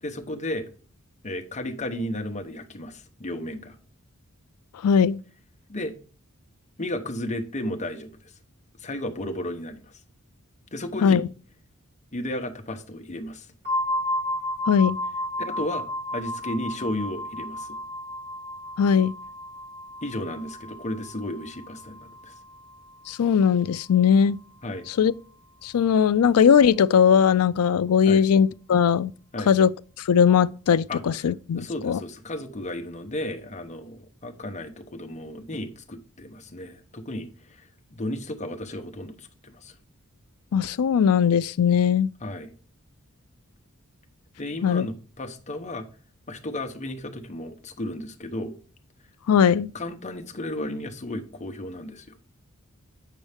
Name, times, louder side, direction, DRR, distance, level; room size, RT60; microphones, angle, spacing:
voice 1, 0.0-0.7 1.2-3.8 5.7-5.9 6.8-8.3 8.8-9.9 10.7-11.2 12.1-13.5 15.4-15.9 16.1-17.8 20.0-22.3 24.6-24.8 28.1-28.2 29.3-29.5 30.9-31.0 31.5-39.7 42.2-42.5 44.4-45.9 46.3-48.5 49.7-52.2, left 1 dB, 35° left, 1.0 m, -34 dB
voice 2, 4.8-5.2 11.0-11.2 14.7-15.0 18.8-19.1 23.1-24.4 25.0-25.1 25.6-29.1 29.5-29.7 30.1-32.0 40.5-42.1 44.6-44.9 49.3-49.7, left 7 dB, 75° left, 0.4 m, -19 dB
sound 1, 13.6-23.3, left 1 dB, 50° right, 2.2 m, -33 dB
8.4 x 5.4 x 3.5 m
head